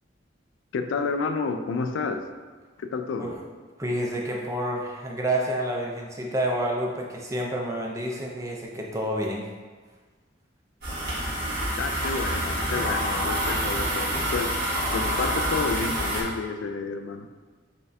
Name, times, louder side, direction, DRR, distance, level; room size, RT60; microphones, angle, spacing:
voice 1, 0.7-2.3 2.8-3.4 11.8-14.6 14.9-17.3, left 4 dB, 70° left, 7 dB, 0.3 m, -30 dB
voice 2, 3.8-9.5, right 1 dB, 15° right, -1 dB, 0.4 m, -29 dB
sound 1, 10.8-16.2, equal, 55° right, 1.2 m, -27 dB
5.7 x 2.2 x 2.6 m, 1.4 s
head